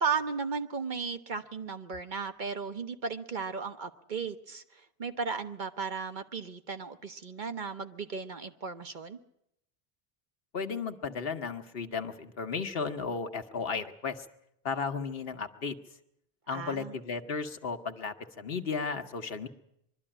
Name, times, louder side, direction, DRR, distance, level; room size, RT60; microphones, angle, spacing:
voice 1, 0.0-9.2 16.5-17.0, right 5 dB, 50° right, 8 dB, 1.1 m, -35 dB
voice 2, 10.5-14.2 14.6-15.8 16.5-19.5, left 5 dB, 70° left, 7 dB, 1.3 m, -34 dB
23.0 x 12.5 x 10.0 m, 0.79 s
omnidirectional pair, 1.0 m